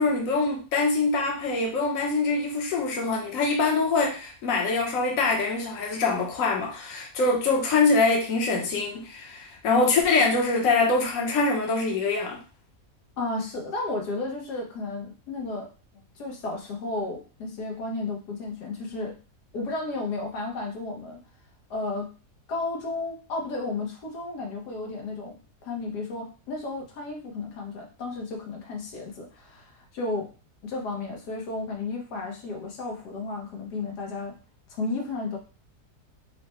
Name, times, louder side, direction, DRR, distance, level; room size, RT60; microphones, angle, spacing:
voice 1, 0.0-12.4, left 3 dB, 60° left, 1.3 m, -24 dB
voice 2, 13.2-15.7 16.1-19.2 19.5-21.2 21.7-22.1 22.5-30.3 30.6-34.4 34.7-35.4, left 3 dB, 85° left, 1.6 m, -33 dB
4.7 x 2.2 x 4.2 m
omnidirectional pair, 1.7 m